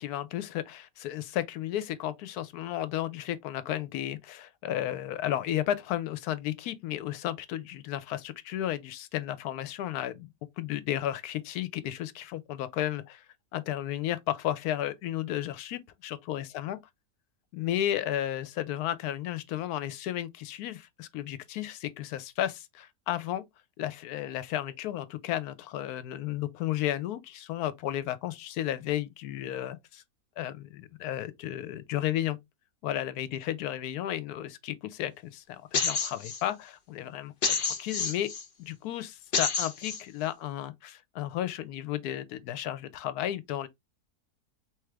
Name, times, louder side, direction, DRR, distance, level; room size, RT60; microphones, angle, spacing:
voice 1, 0.0-10.3 10.6-13.2 13.5-16.8 17.5-23.4 23.8-30.0 30.4-32.4 32.8-38.3 38.6-43.7, left 12 dB, 75° left, 1.0 m, -33 dB
sound 1, 35.7-36.4 37.4-38.4 39.3-40.0, left 5 dB, 50° left, 0.6 m, -28 dB
3.6 x 3.1 x 3.2 m
omnidirectional pair, 1.7 m